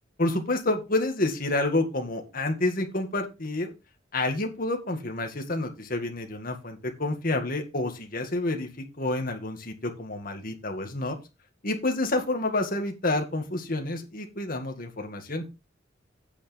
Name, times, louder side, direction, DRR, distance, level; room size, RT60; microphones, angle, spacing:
voice 1, 0.2-3.7 4.1-11.2 11.6-15.4, left 2 dB, 50° left, 4 dB, 1.9 m, -29 dB
8.5 x 8.4 x 3.4 m, 0.28 s
head